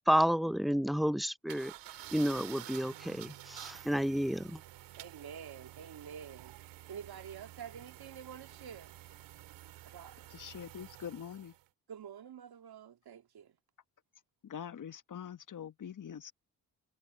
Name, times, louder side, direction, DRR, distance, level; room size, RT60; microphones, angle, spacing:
voice 1, 0.1-1.7 2.1-4.6, equal, ahead, 0.6 m, -30 dB
sound 1, 1.5-11.6, right 15 dB, 75° right, 2.3 m, -50 dB
voice 2, 5.0-6.6 6.9-8.9 9.8-10.2 11.9-13.6, right 8 dB, 60° right, 2.6 m, -48 dB
voice 3, 10.3-11.5 14.4-16.3, left 8 dB, 45° left, 1.3 m, -44 dB
hypercardioid pair, 45°, 43 cm